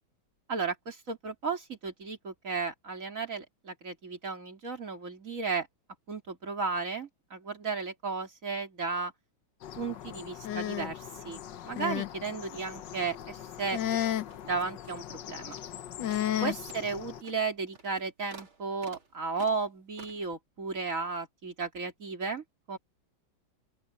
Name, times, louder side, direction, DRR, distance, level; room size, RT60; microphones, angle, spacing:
voice 1, 0.5-5.7 6.1-9.1 9.8-13.8 14.4-15.6 16.4-22.8, right 4 dB, 40° right, 3.6 m, -34 dB
sound 1, 9.6-17.2, left 11 dB, 65° left, 1.5 m, -35 dB
sound 2, 13.0-14.6 14.8-15.2 15.5-15.8 16.1-20.3, right 4 dB, 80° right, 4.4 m, -53 dB
open air
omnidirectional pair, 2.2 m